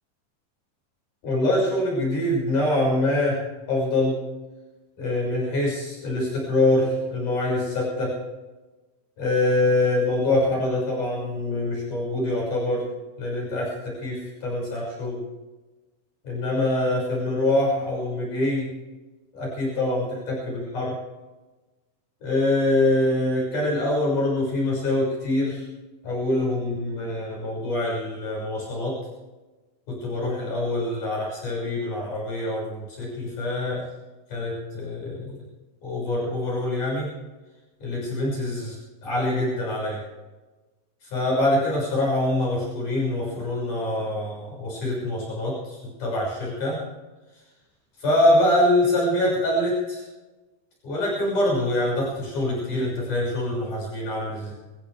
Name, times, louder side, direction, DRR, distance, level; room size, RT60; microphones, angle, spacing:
voice 1, 1.2-3.4 3.7-4.2 5.0-8.1 9.2-12.8 13.2-15.2 16.2-18.7 19.3-21.0 22.2-25.6 26.0-28.9 29.9-33.8 34.3-35.4 35.8-37.1 37.8-38.8 39.0-40.0 41.0-46.8 48.0-50.0 50.8-54.5, left 1 dB, 55° left, -4 dB, 7.8 m, -24 dB
25.5 x 15.5 x 3.5 m, 1.2 s
omnidirectional pair, 4.4 m